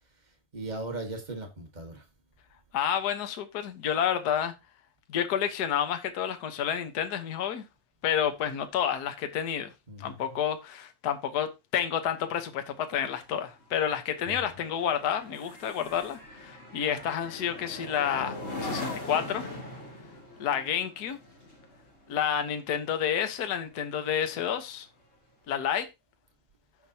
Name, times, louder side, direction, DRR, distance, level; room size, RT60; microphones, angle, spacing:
voice 1, 0.5-2.0 9.9-10.4 14.2-14.5, right 2 dB, 65° right, 0.4 m, -38 dB
voice 2, 2.7-4.5 5.1-7.6 8.0-9.7 10.0-19.4 20.4-21.2 22.1-24.9 25.5-25.8, left 9 dB, 70° left, 0.9 m, -30 dB
sound 1, 12.2-23.9 24.3-24.6, left 2 dB, 25° left, 2.3 m, -41 dB
15.0 x 5.3 x 2.9 m
omnidirectional pair, 3.5 m